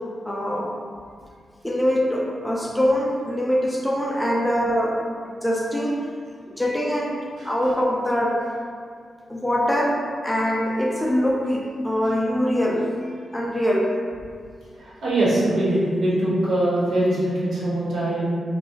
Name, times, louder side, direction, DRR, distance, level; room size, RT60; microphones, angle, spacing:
voice 1, 0.2-0.7 1.6-5.0 5.3-6.0 6.6-8.4 9.3-12.8 13.3-13.9, equal, 5° left, -3 dB, 0.4 m, -23 dB
voice 2, 14.8-18.2, right 1 dB, 80° right, -8 dB, 1.0 m, -22 dB
3.0 x 2.7 x 2.7 m, 2.1 s
wide cardioid pair, 140°, 0 cm